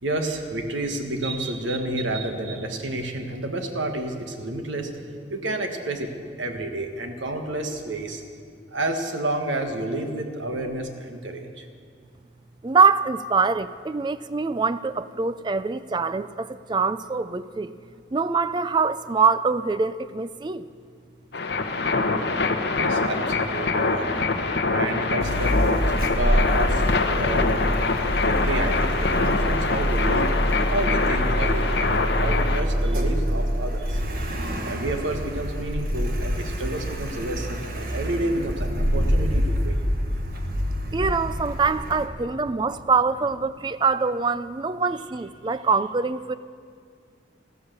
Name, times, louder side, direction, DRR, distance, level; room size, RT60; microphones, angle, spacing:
voice 1, 0.0-5.0 5.3-8.2 8.7-11.7 22.7-27.5 28.2-30.5 30.7-34.0 34.6-39.8 42.5-42.6, right 1 dB, 80° right, 5 dB, 1.5 m, -30 dB
voice 2, 12.6-17.7 18.1-20.6 40.9-46.3, right 4 dB, 25° right, 14 dB, 0.3 m, -24 dB
sound 1, 21.3-32.6, left 3 dB, 60° left, 1.0 m, -24 dB
Car, 25.2-42.1, equal, 50° right, 1.3 m, -26 dB
14.5 x 13.5 x 6.8 m, 2.2 s
head